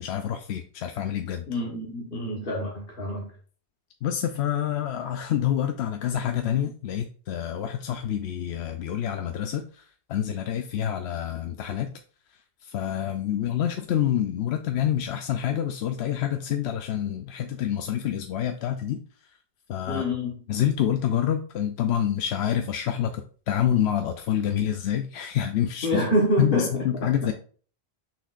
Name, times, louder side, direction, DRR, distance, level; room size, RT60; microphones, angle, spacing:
voice 1, 0.0-1.5 4.0-9.8 10.1-11.9 12.6-19.0 19.7-20.0 20.5-25.9 26.4-27.3, left 10 dB, 80° left, 6 dB, 0.8 m, -27 dB
voice 2, 1.5-3.3 19.9-20.4 25.8-27.3, equal, 55° left, -2 dB, 1.5 m, -27 dB
6.5 x 6.1 x 2.5 m, 0.42 s
omnidirectional pair, 1.1 m